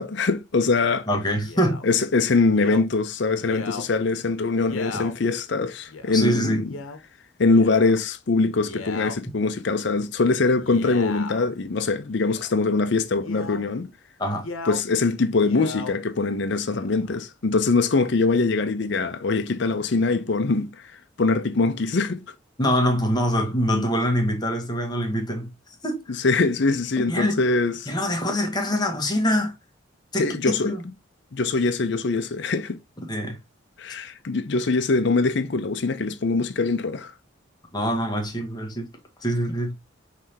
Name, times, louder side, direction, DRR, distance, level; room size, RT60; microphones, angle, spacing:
voice 1, 0.0-1.1 1.8-6.7 7.4-13.9 14.7-20.9 21.2-22.2 23.7-23.8 26.1-27.9 30.2-30.7 31.3-32.8 33.8-37.1, left 3 dB, 60° left, 0.5 m, -23 dB
voice 2, 1.1-1.8 6.1-6.6 14.2-14.5 22.6-25.5 25.8-26.2 27.1-27.4 27.9-29.5 30.1-30.8 33.0-33.4 37.7-38.9 39.2-39.7, equal, 20° left, 1.1 m, -24 dB
Male speech man speaking, 1.4-1.9 2.5-2.8 3.4-3.9 4.6-5.1 5.9-6.1 6.6-7.0 7.4-8.0 8.5-9.2 10.5-11.5 12.1-12.6 13.2-13.7 14.3-14.8 15.3-15.9 16.6-17.2, left 4 dB, 90° left, 0.8 m, -36 dB
5.5 x 3.3 x 2.8 m
head